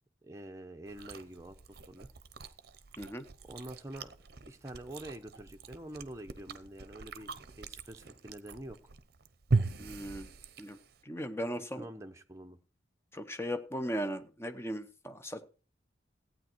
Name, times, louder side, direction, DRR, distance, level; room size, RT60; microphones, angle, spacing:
voice 1, 0.2-2.1 3.5-4.1 4.5-8.8 9.6-9.7 11.5-12.6, right 1 dB, 15° right, 5 dB, 0.9 m, -46 dB
Chewing mastication, 0.9-11.0, right 3 dB, 50° right, 0.7 m, -39 dB
voice 2, 9.8-10.3 10.6-10.8 11.0-11.9 13.1-15.4, equal, 15° left, 8 dB, 0.8 m, -37 dB
15.0 x 9.0 x 4.5 m, 0.37 s
head